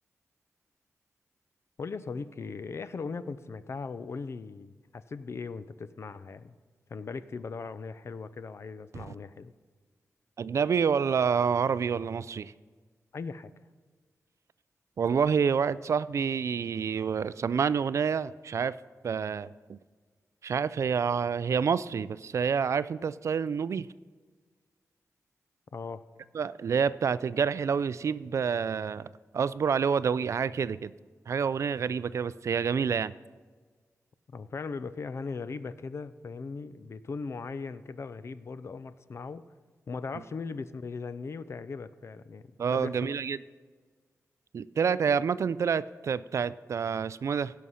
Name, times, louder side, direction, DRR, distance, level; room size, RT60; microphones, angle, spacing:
voice 1, 1.8-6.6 6.9-9.5 13.1-13.5 25.7-26.0 34.3-39.4 39.9-43.1, left 4 dB, 55° left, 14 dB, 0.5 m, -39 dB
voice 2, 10.4-12.5 15.0-18.8 19.0-19.8 20.4-23.9 26.3-29.1 29.3-30.9 31.3-33.1 42.6-43.4 44.5-47.5, right 6 dB, 60° right, 17 dB, 0.3 m, -28 dB
16.5 x 6.3 x 5.7 m, 1.5 s
wide cardioid pair, 110°, 6 cm